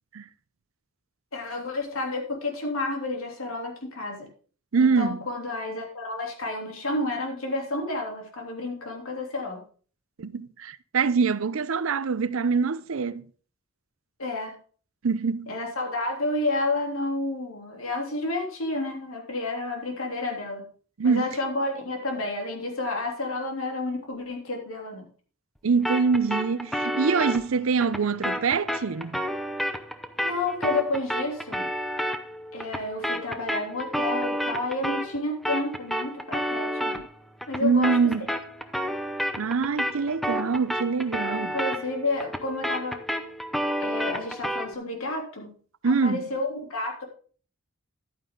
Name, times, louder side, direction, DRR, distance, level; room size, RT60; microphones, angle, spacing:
voice 1, 1.3-4.3 4.8-9.6 14.2-14.5 15.5-20.7 21.0-25.1 30.2-31.7 32.5-37.0 37.5-38.0 41.5-43.0 43.8-45.5 45.8-47.0, left 2 dB, 90° left, 3.2 m, -30 dB
voice 2, 4.7-5.3 10.2-13.3 15.0-15.5 21.0-21.3 25.6-29.2 37.6-38.3 39.4-41.6 45.8-46.2, right 5 dB, 75° right, 0.6 m, -24 dB
sound 1, 25.8-35.2 35.4-44.7, equal, ahead, 0.7 m, -30 dB
11.0 x 9.2 x 3.8 m
head